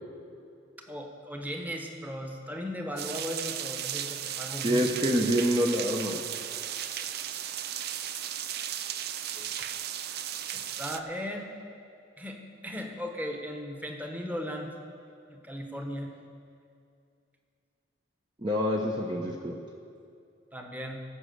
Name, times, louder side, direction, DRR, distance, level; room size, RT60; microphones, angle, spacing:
voice 1, 0.8-4.9 5.2-5.3 9.3-9.7 10.5-11.5 12.2-14.7 15.3-16.1 20.5-21.0, equal, 10° right, 3 dB, 1.2 m, -37 dB
sound 1, 3.0-11.0, right 10 dB, 55° right, 0.5 m, -35 dB
voice 2, 4.6-6.2 18.4-19.6, equal, 25° right, -1 dB, 0.8 m, -26 dB
16.5 x 6.2 x 7.9 m, 2.4 s
head